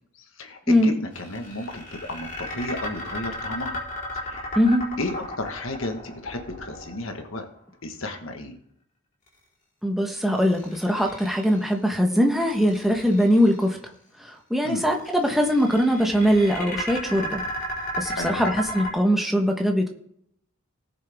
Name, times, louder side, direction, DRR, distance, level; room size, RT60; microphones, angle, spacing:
voice 1, 0.1-3.8 4.1-4.5 5.0-7.4 7.8-8.5 14.6-14.9 18.1-18.4, left 1 dB, 70° left, 5 dB, 1.6 m, -33 dB
sound 1, 1.1-7.3 10.2-11.7 12.3-13.6 14.9-18.9, equal, 40° left, 4.2 m, -34 dB
voice 2, 4.5-4.8 9.8-13.8 14.2-17.4 18.0-19.9, equal, ahead, 2 dB, 1.2 m, -21 dB
18.5 x 6.9 x 3.6 m, 0.71 s
head